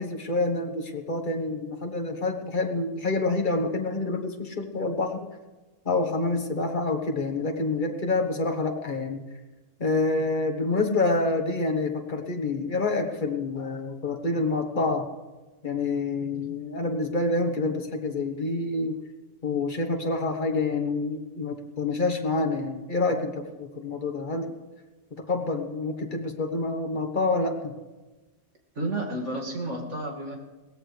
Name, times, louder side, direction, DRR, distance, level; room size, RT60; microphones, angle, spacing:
voice 1, 0.0-5.3 5.8-9.2 9.8-15.1 15.6-19.0 19.4-24.5 25.3-27.7, left 3 dB, 40° left, 4 dB, 1.5 m, -27 dB
voice 2, 28.7-30.4, right 1 dB, 70° right, -1 dB, 2.7 m, -31 dB
22.0 x 17.5 x 3.4 m, 1.2 s
omnidirectional pair, 1.3 m